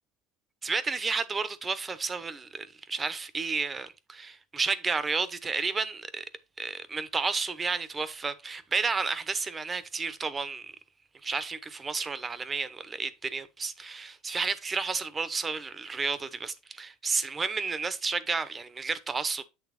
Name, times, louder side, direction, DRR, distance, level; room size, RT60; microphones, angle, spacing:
voice 1, 0.6-6.3 6.6-10.7 11.2-19.4, right 4 dB, 20° right, 0.8 m, -31 dB
8.2 x 3.3 x 4.8 m
supercardioid pair, 115°, 0 cm